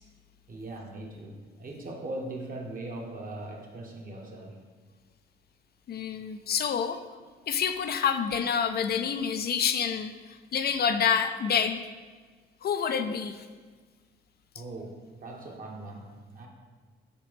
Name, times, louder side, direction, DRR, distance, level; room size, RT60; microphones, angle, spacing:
voice 1, 0.5-4.6 14.5-16.5, right 2 dB, 45° right, 0 dB, 1.4 m, -40 dB
voice 2, 5.9-7.0 7.5-11.8 12.6-13.4, left 7 dB, 55° left, 8 dB, 0.4 m, -28 dB
5.9 x 4.2 x 5.2 m, 1.5 s
cardioid pair, 90°, 20 cm